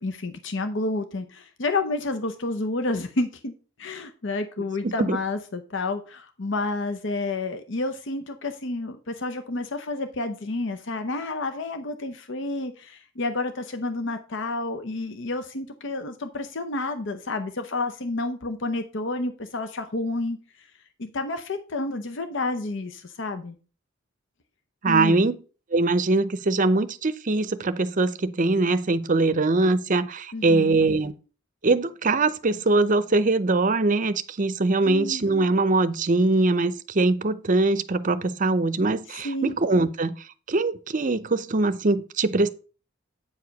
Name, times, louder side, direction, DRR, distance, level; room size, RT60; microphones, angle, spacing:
voice 1, 0.0-3.5 3.8-20.4 21.0-23.6 24.9-25.2 30.3-30.7 34.8-35.2 39.2-39.6, left 2 dB, 60° left, 0.7 m, -30 dB
voice 2, 4.8-5.2 24.8-25.4 25.7-31.1 31.6-40.1 40.5-42.5, right 3 dB, 40° right, 0.6 m, -22 dB
8.8 x 4.8 x 5.2 m
head